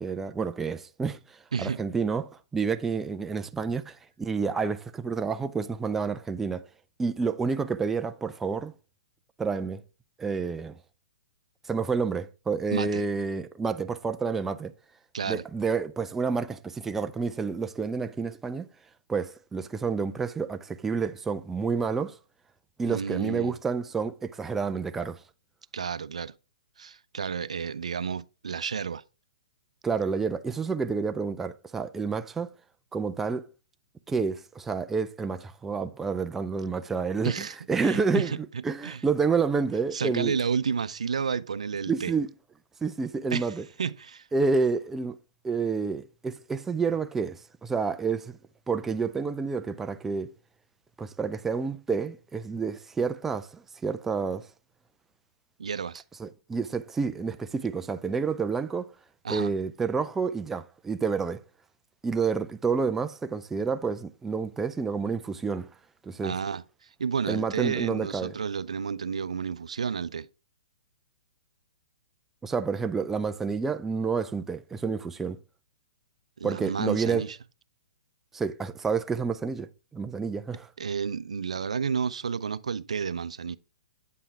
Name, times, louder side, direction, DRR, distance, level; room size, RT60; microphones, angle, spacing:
voice 1, 0.0-6.6 7.0-8.7 9.4-9.8 10.2-10.8 11.7-14.7 15.3-18.7 19.1-22.2 22.8-25.2 29.8-32.5 32.9-33.4 34.1-37.3 37.7-40.4 41.9-42.3 42.8-43.6 44.3-45.2 45.4-48.4 48.7-50.3 51.0-54.5 56.2-58.9 59.3-61.4 62.0-65.7 66.0-66.3 67.3-68.3 72.4-75.4 76.4-77.3 78.3-80.7, right 5 dB, 10° right, 0.4 m, -29 dB
voice 2, 1.5-1.8 12.7-13.0 15.1-15.4 22.9-23.6 25.7-26.3 26.8-29.0 37.2-39.0 39.9-42.1 43.3-44.3 55.6-56.0 59.2-59.5 66.2-70.3 76.4-77.4 80.8-83.6, right 6 dB, 85° right, 0.5 m, -31 dB
8.5 x 5.6 x 3.4 m
hypercardioid pair, 140°, 3 cm